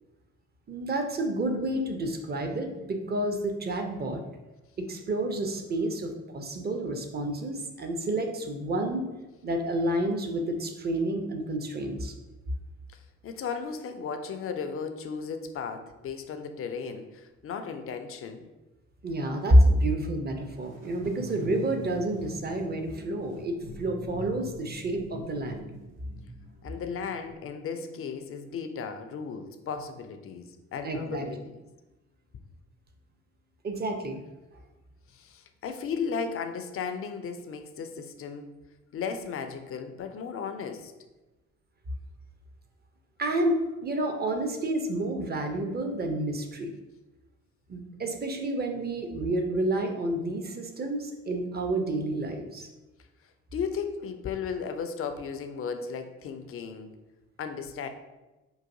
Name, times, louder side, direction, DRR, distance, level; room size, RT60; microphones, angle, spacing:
voice 1, 0.7-4.2 4.8-9.0 9.4-12.1 19.0-25.7 30.8-31.3 33.6-34.2 43.2-46.7 47.7-52.7, right 1 dB, 25° right, 4 dB, 0.6 m, -29 dB
voice 2, 12.9-18.5 26.6-31.6 35.1-38.5 38.9-40.9 53.5-56.9 57.4-57.9, left 6 dB, 35° left, 7 dB, 0.5 m, -35 dB
sound 1, 20.5-27.3, equal, 70° right, 1.0 m, -44 dB
4.7 x 2.5 x 2.6 m, 1.1 s
figure-of-eight pair, 45°, 42 cm